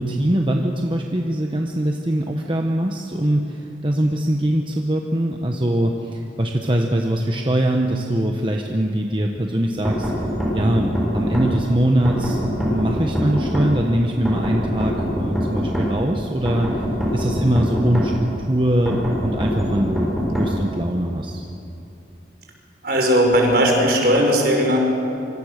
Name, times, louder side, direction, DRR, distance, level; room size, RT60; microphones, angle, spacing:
voice 1, 0.0-10.1 10.5-14.9 15.2-16.7 17.1-21.4, right 1 dB, 25° right, 2 dB, 1.2 m, -22 dB
sound 1, 9.9-11.5 12.1-13.7 14.3-15.9 16.5-18.1 18.9-20.5, equal, ahead, 6.9 m, -23 dB
voice 2, 22.8-24.8, equal, 55° right, 0 dB, 5.4 m, -17 dB
26.0 x 25.5 x 6.7 m, 2.9 s
head